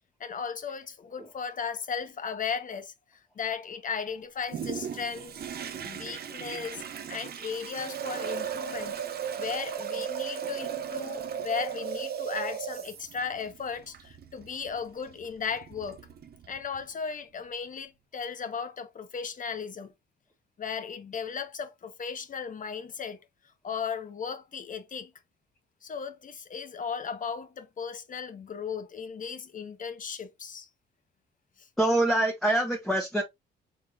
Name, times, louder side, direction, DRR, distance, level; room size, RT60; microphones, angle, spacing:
voice 1, 0.2-2.9 3.4-5.4 5.8-6.8 7.1-8.9 9.4-16.0 16.5-19.9 20.6-23.2 23.6-25.1 25.8-30.7 31.6-31.7, left 6 dB, 40° left, 0.9 m, -36 dB
Toilet flush, 4.5-16.9 17.5-17.6, right 8 dB, 50° right, 0.8 m, -42 dB
sound 1, 7.8-12.8, right 8 dB, 85° right, 1.4 m, -35 dB
voice 2, 31.8-33.2, right 1 dB, ahead, 1.0 m, -25 dB
4.7 x 3.7 x 2.4 m
cardioid pair, 90°, 20 cm